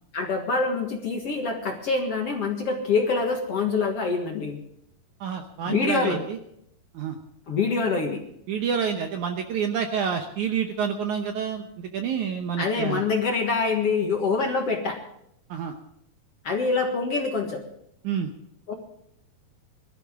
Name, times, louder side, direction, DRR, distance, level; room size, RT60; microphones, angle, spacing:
voice 1, 0.1-4.6 5.7-6.2 7.5-8.2 12.6-15.0 16.4-17.6 18.7-18.8, left 4 dB, 50° left, 2 dB, 2.0 m, -25 dB
voice 2, 5.2-6.4 6.9-7.2 8.5-13.0 15.5-15.7 18.0-18.3, right 7 dB, 70° right, 5 dB, 2.0 m, -28 dB
22.0 x 13.0 x 3.7 m, 0.73 s
omnidirectional pair, 4.4 m